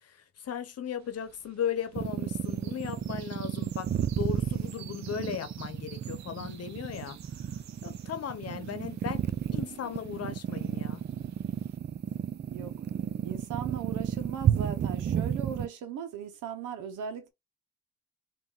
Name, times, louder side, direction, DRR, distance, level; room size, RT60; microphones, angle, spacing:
voice 1, 0.0-7.2 7.8-9.2 9.5-11.0, left 8 dB, 55° left, 1.0 m, -37 dB
sound 1, 1.0-11.8, right 9 dB, 65° right, 0.9 m, -55 dB
sound 2, 1.9-15.7, right 9 dB, 35° right, 0.5 m, -32 dB
voice 2, 8.5-8.9 12.5-12.7 13.2-17.3, right 8 dB, 85° right, 1.2 m, -38 dB
3.5 x 2.9 x 3.9 m
cardioid pair, 90°, 30 cm